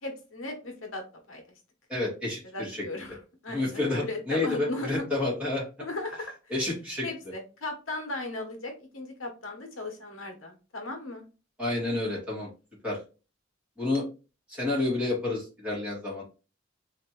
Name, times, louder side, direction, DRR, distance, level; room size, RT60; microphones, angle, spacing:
voice 1, 0.0-1.4 2.5-5.0 5.8-6.3 7.0-11.2, left 2 dB, 80° left, 3 dB, 1.1 m, -37 dB
voice 2, 1.9-2.8 3.5-5.6 6.5-7.1 11.6-12.5 12.8-13.0 13.8-14.0 14.5-16.2, left 2 dB, 5° right, -6 dB, 2.3 m, -29 dB
4.1 x 2.9 x 3.0 m, 0.32 s
head